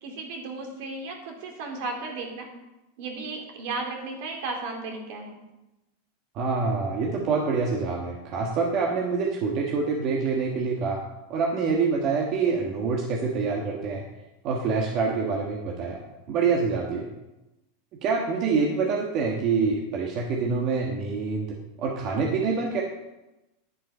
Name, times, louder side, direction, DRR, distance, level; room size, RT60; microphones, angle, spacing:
voice 1, 0.0-2.5 3.0-5.4, right 3 dB, 60° right, 2 dB, 2.7 m, -34 dB
voice 2, 6.3-11.0 11.3-14.1 14.4-16.0 16.3-17.1 18.0-22.8, right 4 dB, 40° right, 0 dB, 1.5 m, -26 dB
11.0 x 7.5 x 5.5 m, 0.99 s
supercardioid pair, 145°, 0 cm